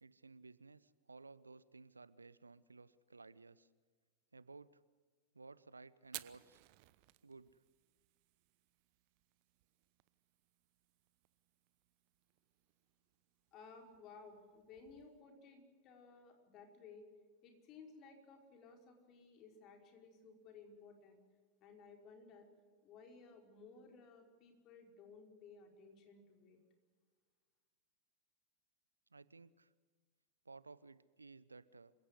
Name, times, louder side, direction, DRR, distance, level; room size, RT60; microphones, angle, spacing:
voice 1, 0.0-3.7 4.3-4.7 5.3-6.6 7.2-7.5 29.1-29.7 30.4-31.9, right 3 dB, 80° right, 19 dB, 0.7 m, -57 dB
Fire, 6.0-15.2, right 22 dB, 45° right, 0.9 m, -59 dB
voice 2, 13.5-17.1 17.4-21.2 21.6-22.5 22.8-26.6, left 4 dB, 35° left, 3 dB, 5.0 m, -58 dB
27.5 x 16.5 x 8.1 m, 1.5 s
figure-of-eight pair, 90°, 0 cm